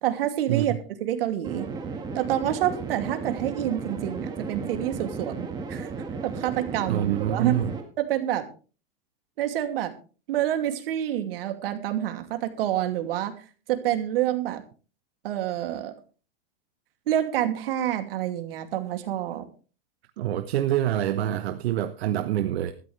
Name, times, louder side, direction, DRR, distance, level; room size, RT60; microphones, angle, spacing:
voice 1, 0.0-0.7 1.0-1.7 2.1-5.9 6.2-7.6 8.0-8.4 9.4-9.9 10.3-13.3 13.7-14.6 15.2-15.9 17.1-19.4, right 12 dB, 70° right, 7 dB, 2.6 m, -27 dB
sound 1, 1.4-7.8, right 4 dB, 15° right, 1.7 m, -34 dB
voice 2, 6.9-7.7 20.2-22.7, right 12 dB, 90° right, 8 dB, 1.1 m, -26 dB
15.0 x 13.5 x 3.3 m, 0.37 s
supercardioid pair, 175°, 30 cm